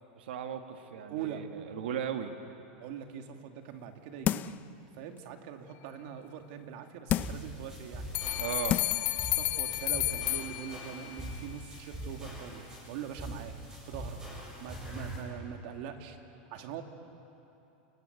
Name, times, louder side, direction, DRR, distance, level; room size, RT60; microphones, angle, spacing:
voice 1, 0.1-2.3 8.4-8.8, right 9 dB, 85° right, 6 dB, 1.6 m, -36 dB
voice 2, 1.1-1.4 2.8-4.6 4.9-8.1 9.4-13.5 13.8-14.2 14.6-16.2 16.5-16.8, right 8 dB, 60° right, 5 dB, 2.4 m, -42 dB
sound 1, 4.2-4.7 5.2-5.3 7.1-7.5 8.2-8.3 8.7-9.1 9.5-9.6, left 12 dB, 30° left, 0.5 m, -30 dB
sound 2, 7.2-15.2, right 1 dB, 10° right, 7.6 m, -43 dB
sound 3, 8.1-11.2, left 18 dB, 50° left, 1.5 m, -32 dB
29.0 x 20.5 x 8.1 m, 2.9 s
supercardioid pair, 145°, 6 cm